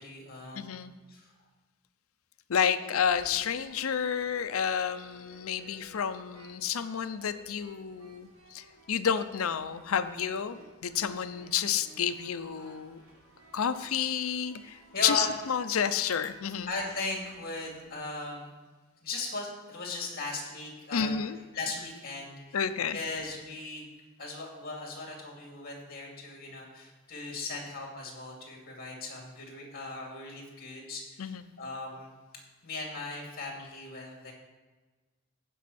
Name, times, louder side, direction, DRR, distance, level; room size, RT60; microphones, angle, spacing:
voice 1, 0.0-0.8 1.1-1.3 14.9-15.2 16.7-18.5 19.0-21.1 21.5-22.6 22.9-23.8 24.2-32.1 32.6-34.3, left 3 dB, 45° left, 0 dB, 2.5 m, -38 dB
voice 2, 0.5-0.9 2.5-13.0 13.5-16.7 20.9-21.4 22.5-23.0 31.2-31.4, left 7 dB, 80° left, 12 dB, 0.6 m, -30 dB
sound 1, 3.0-18.0, right 1 dB, 80° right, 3.6 m, -57 dB
15.5 x 5.5 x 4.2 m, 1.3 s
head